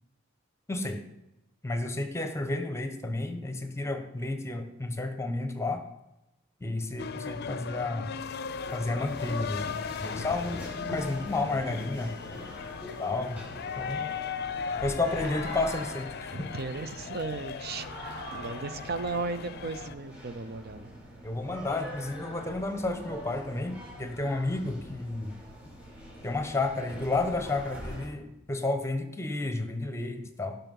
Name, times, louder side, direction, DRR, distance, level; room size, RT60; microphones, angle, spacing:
voice 1, 0.7-1.0 1.6-5.8 6.6-8.1 8.7-10.6 10.9-12.2 13.0-13.4 13.8-14.1 14.8-16.5 21.2-25.3 26.2-30.6, left 2 dB, 15° left, 7 dB, 1.1 m, -31 dB
sound 1, 7.0-19.9, left 6 dB, 55° left, 0.5 m, -38 dB
sound 2, 8.6-28.1, equal, 5° right, 4.2 m, -43 dB
voice 2, 16.3-17.9 18.3-20.9, right 3 dB, 55° right, 12 dB, 0.8 m, -35 dB
17.0 x 5.8 x 5.5 m, 0.92 s
head